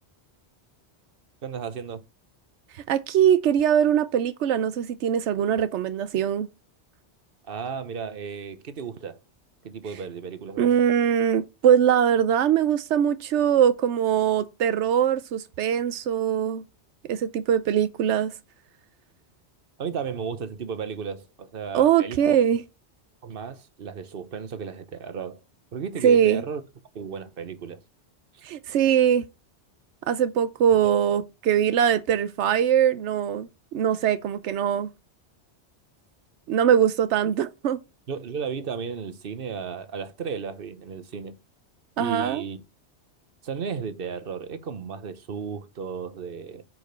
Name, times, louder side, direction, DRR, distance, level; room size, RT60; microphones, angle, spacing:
voice 1, 1.4-2.0 7.5-9.2 9.6-10.7 19.8-22.4 23.2-25.4 25.7-26.6 26.9-27.8 38.1-41.3 42.0-42.6 43.4-46.6, right 6 dB, 55° right, 1.2 m, -34 dB
voice 2, 2.7-6.5 10.6-16.6 17.1-18.3 21.7-22.6 26.0-26.4 28.4-29.3 30.1-34.9 36.5-37.8 42.0-42.4, right 9 dB, 90° right, 0.9 m, -22 dB
6.6 x 5.1 x 6.7 m
omnidirectional pair, 1.2 m